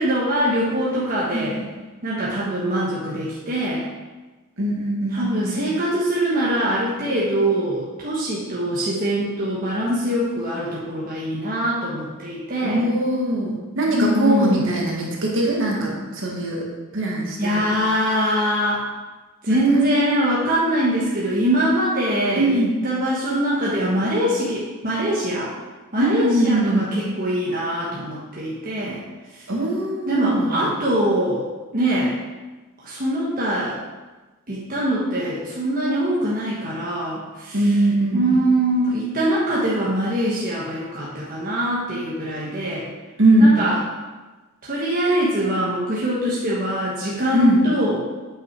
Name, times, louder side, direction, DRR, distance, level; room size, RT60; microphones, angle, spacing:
voice 1, 0.0-1.6 2.0-3.8 5.1-12.8 13.9-14.6 17.4-18.8 19.4-25.5 25.9-29.0 30.1-31.4 31.7-32.1 32.8-33.8 34.5-37.6 38.1-42.9 43.4-43.8 44.6-48.0, right 1 dB, 40° right, -7 dB, 1.4 m, -23 dB
voice 2, 1.0-1.7 4.6-5.7 12.6-16.6 16.9-17.7 22.3-22.7 26.0-26.9 29.5-30.7 37.5-38.4 43.2-43.6 47.3-47.6, right 1 dB, 55° right, -2 dB, 1.9 m, -21 dB
8.8 x 5.6 x 4.6 m, 1.2 s
head